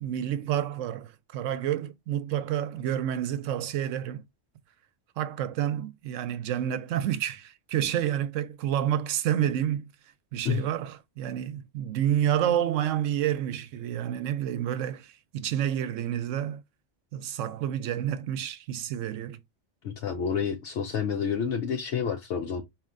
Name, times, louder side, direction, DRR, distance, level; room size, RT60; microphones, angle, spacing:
voice 1, 0.0-4.2 5.2-9.9 10.3-16.6 17.1-19.4, right 10 dB, 85° right, 1.0 m, -29 dB
voice 2, 19.8-22.6, left 7 dB, 70° left, 0.9 m, -29 dB
4.3 x 2.8 x 2.5 m
omnidirectional pair, 1.3 m